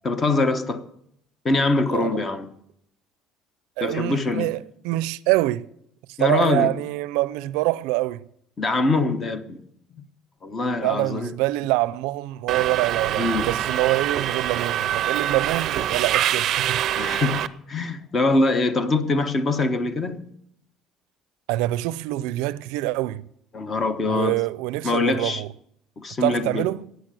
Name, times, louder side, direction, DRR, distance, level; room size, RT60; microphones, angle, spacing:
voice 1, 0.0-0.8 1.4-2.5 3.8-4.5 6.2-6.8 8.6-9.6 10.4-11.3 13.2-13.6 17.0-20.3 23.5-24.4 24.8-25.4 26.0-26.7, left 3 dB, 20° left, 1.0 m, -23 dB
voice 2, 3.8-5.7 6.1-8.3 10.8-16.8 21.5-23.3 24.1-25.5 26.2-26.9, right 18 dB, 90° right, 0.5 m, -25 dB
Subway metro underground, 12.5-17.5, right 11 dB, 45° right, 0.6 m, -25 dB
15.0 x 9.4 x 7.6 m
cardioid pair, 170°, 0 cm